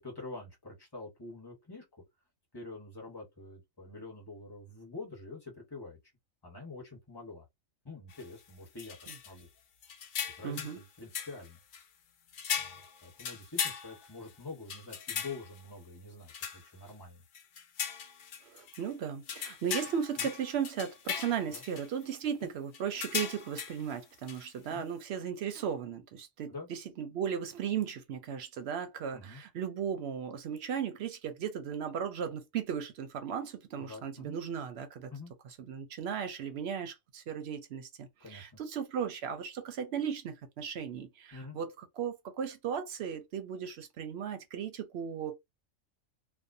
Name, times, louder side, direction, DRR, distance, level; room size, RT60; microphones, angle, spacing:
voice 1, 0.0-1.8 2.5-6.0 6.4-7.5 7.8-9.0 9.2-9.5 10.4-11.6 12.6-17.2 20.2-20.3 21.5-21.6 22.4-22.5 24.7-24.9 26.5-26.7 29.1-29.4 33.7-34.3 35.1-35.3 38.2-38.6 41.3-41.6, left 3 dB, 20° left, 1.0 m, -46 dB
sound 1, 8.1-8.3 8.8-9.4 9.8-10.8 11.1-11.8 12.3-14.3 14.7-15.6 16.3-16.9 17.3-18.8 19.3-22.0 22.7-23.9 24.3-24.5, left 7 dB, 70° left, 0.5 m, -38 dB
voice 2, 10.4-10.8 18.4-35.1 35.7-45.3, right 7 dB, 65° right, 0.7 m, -36 dB
2.5 x 2.1 x 2.6 m
omnidirectional pair, 1.4 m